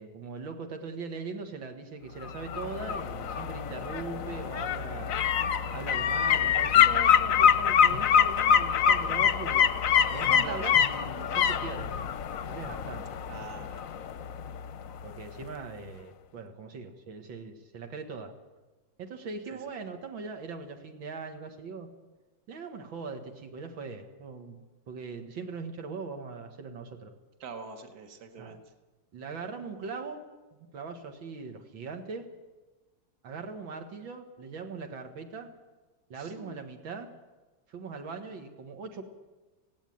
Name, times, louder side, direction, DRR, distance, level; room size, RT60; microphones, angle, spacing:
voice 1, 0.0-5.3 5.7-9.7 10.1-12.1 12.5-13.0 15.0-18.3 19.0-21.9 22.5-27.1 28.4-28.6 29.1-30.2 30.7-32.3 33.2-35.5 36.1-37.1 37.7-39.0, right 4 dB, 90° right, 5 dB, 2.5 m, -40 dB
sound 1, 2.2-15.1 15.4-15.5, left 8 dB, 60° left, 0.9 m, -25 dB
voice 2, 10.4-10.8 13.3-13.9 19.5-19.6 27.4-28.6 36.2-36.6, right 4 dB, 55° right, 6 dB, 2.1 m, -44 dB
17.5 x 16.5 x 9.2 m, 1.2 s
omnidirectional pair, 2.1 m